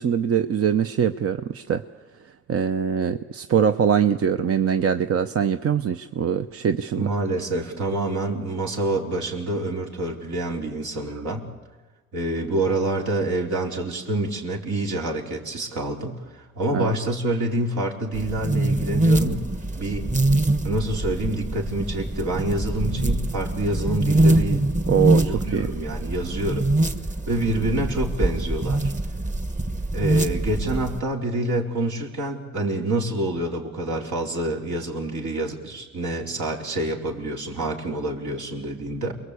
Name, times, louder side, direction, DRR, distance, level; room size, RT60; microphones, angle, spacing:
voice 1, 0.0-1.8 2.5-7.0 16.7-17.0 24.9-25.7, right 8 dB, 50° right, 9 dB, 0.9 m, -23 dB
voice 2, 7.0-11.5 12.1-16.2 16.6-19.5 19.8-20.1 20.6-24.7 25.2-26.7 27.3-28.9 29.9-39.1, right 2 dB, 70° right, 0 dB, 4.2 m, -27 dB
sound 1, 18.1-31.0, right 2 dB, 25° right, 1.5 m, -24 dB
29.0 x 22.0 x 8.4 m, 1.3 s
cardioid pair, 90°, 30 cm